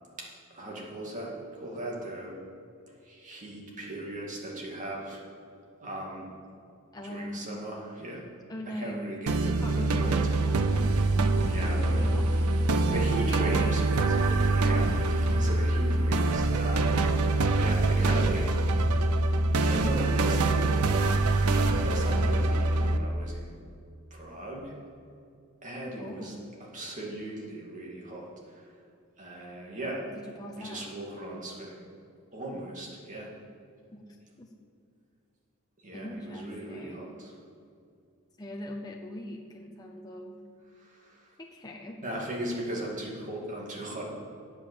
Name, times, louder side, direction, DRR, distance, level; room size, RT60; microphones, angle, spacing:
voice 1, 0.5-2.3 3.0-5.2 5.8-6.3 7.0-8.3 8.7-12.0 12.9-14.2 14.5-17.0 17.6-18.7 19.6-20.8 21.4-23.6 24.1-24.7 25.6-26.3 26.7-28.7 29.2-30.1 30.6-31.9 32.3-33.3 35.8-37.4 40.7-41.3 42.0-44.1, right 1 dB, 35° right, -3 dB, 2.3 m, -38 dB
voice 2, 6.9-7.6 8.5-9.1 9.4-10.7 11.3-12.4 13.2-13.9 14.3-14.6 16.7-17.1 19.8-20.9 26.0-26.6 30.2-30.9 33.9-34.6 35.9-37.2 38.4-40.4 41.4-42.0, left 1 dB, 20° left, 0 dB, 0.7 m, -41 dB
sound 1, 9.3-23.0, right 2 dB, 90° right, 0.6 m, -25 dB
9.9 x 7.3 x 6.8 m, 2.4 s
head